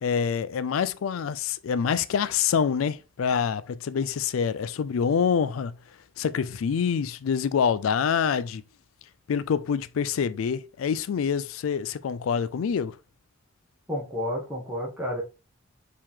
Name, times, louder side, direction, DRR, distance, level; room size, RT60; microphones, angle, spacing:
voice 1, 0.0-5.8 6.2-8.6 9.3-13.0, left 7 dB, 85° left, 0.4 m, -26 dB
voice 2, 13.9-15.2, equal, 10° right, 1.0 m, -30 dB
4.7 x 3.0 x 3.5 m
head